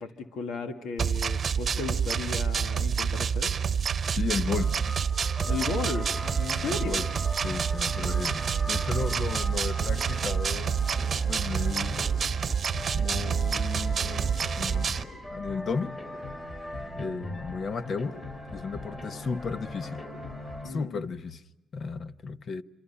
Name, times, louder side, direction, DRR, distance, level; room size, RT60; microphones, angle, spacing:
voice 1, 0.0-3.5 5.5-7.0 20.6-21.0, left 4 dB, 80° left, 1.9 m, -35 dB
sound 1, 1.0-15.0, right 7 dB, 45° right, 1.0 m, -28 dB
voice 2, 4.0-4.7 6.6-7.0 7.4-10.8 11.3-12.0 12.9-15.0 15.3-16.0 16.9-18.2 18.5-20.0 20.6-21.4 21.7-22.6, left 5 dB, 50° left, 1.1 m, -34 dB
sound 2, 4.5-20.7, left 1 dB, 30° left, 5.1 m, -40 dB
sound 3, 4.5-12.3, right 1 dB, 5° left, 0.9 m, -45 dB
27.5 x 26.5 x 5.6 m
cardioid pair, 90°, 0 cm